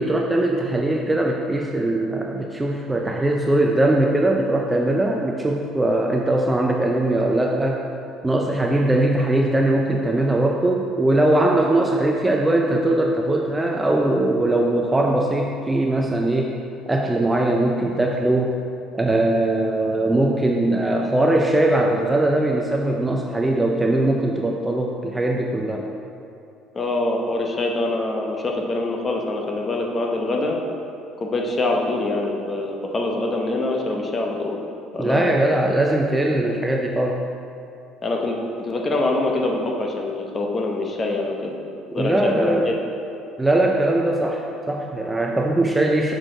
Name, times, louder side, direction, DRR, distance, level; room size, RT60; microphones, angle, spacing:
voice 1, 0.0-7.8 8.2-16.5 16.9-18.6 18.9-25.8 35.0-37.3 42.0-42.7 43.4-46.1, right 1 dB, 10° right, 0 dB, 0.4 m, -20 dB
voice 2, 26.7-30.6 31.2-34.6 34.9-35.5 38.0-41.6 41.9-42.8, left 2 dB, 25° left, 1 dB, 0.8 m, -24 dB
6.3 x 6.3 x 3.8 m, 2.6 s
cardioid pair, 135°, 0 cm